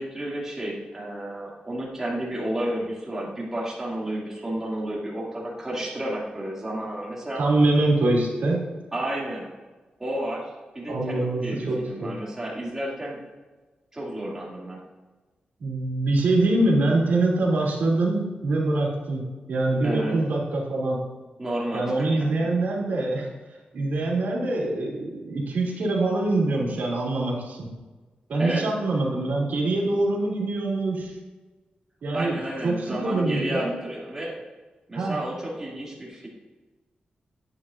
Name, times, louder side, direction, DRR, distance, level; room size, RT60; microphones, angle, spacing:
voice 1, 0.0-7.4 8.9-9.5 10.0-10.4 10.7-13.2 13.9-14.8 19.8-20.2 21.4-22.3 28.4-28.6 32.1-34.3 34.9-36.3, right 1 dB, 15° right, -5 dB, 2.3 m, -31 dB
voice 2, 7.4-8.6 10.9-12.1 15.6-19.2 19.5-21.0 21.7-23.3 23.7-27.7 28.3-31.2 32.0-33.7 34.9-35.2, right 2 dB, 85° right, -3 dB, 2.4 m, -24 dB
9.9 x 8.9 x 2.5 m, 1.3 s
wide cardioid pair, 180°, 3 cm